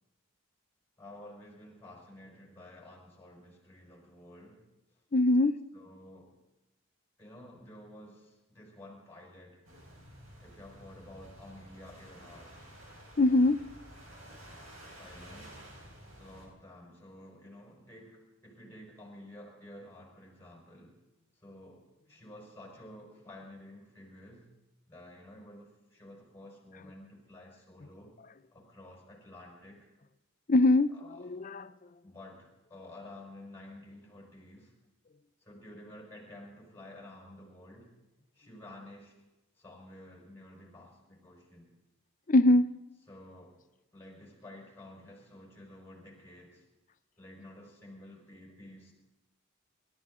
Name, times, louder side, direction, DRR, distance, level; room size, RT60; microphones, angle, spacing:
voice 1, 1.0-4.6 5.7-6.4 7.2-9.6 10.4-12.6 15.0-15.6 16.2-21.0 21.4-24.5 24.9-28.2 28.5-29.9 30.9-31.3 32.0-34.7 35.4-37.9 38.3-39.1 39.6-41.7 43.1-43.6 43.9-46.6 47.2-48.9, left 1 dB, 10° left, -1 dB, 5.0 m, -51 dB
voice 2, 5.1-5.6 13.2-13.7 30.5-31.7 42.3-42.7, left 2 dB, 40° left, 14 dB, 0.6 m, -23 dB
sound 1, 9.6-16.5, right 1 dB, 85° right, 5.2 m, -51 dB
28.5 x 13.0 x 3.8 m, 1.0 s
head